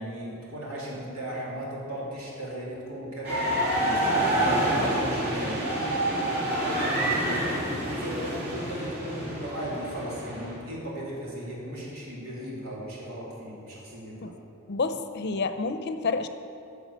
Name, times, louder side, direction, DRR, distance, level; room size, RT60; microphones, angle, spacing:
voice 1, 0.0-3.5 3.8-7.5 8.0-14.2, right 1 dB, 85° right, -5 dB, 3.0 m, -36 dB
sound 1, 3.2-10.5, right 1 dB, 50° right, 2.8 m, -27 dB
voice 2, 14.7-16.3, left 4 dB, 55° left, 10 dB, 0.6 m, -29 dB
10.5 x 7.0 x 6.6 m, 2.6 s
head